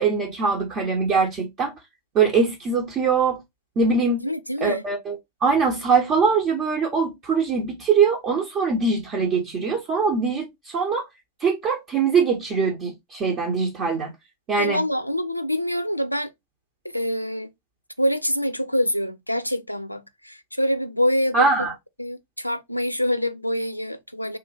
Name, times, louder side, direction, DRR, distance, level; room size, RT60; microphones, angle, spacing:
voice 1, 0.0-1.7 2.1-3.4 3.8-4.2 4.6-5.2 5.4-11.0 11.4-14.1 14.5-14.8 21.3-21.7, right 5 dB, 30° right, 0.9 m, -22 dB
voice 2, 4.2-4.8 14.6-16.3 16.9-17.5 18.0-21.5 22.0-24.4, equal, 90° left, 0.3 m, -25 dB
3.4 x 2.6 x 3.2 m
figure-of-eight pair, 90°, 0 cm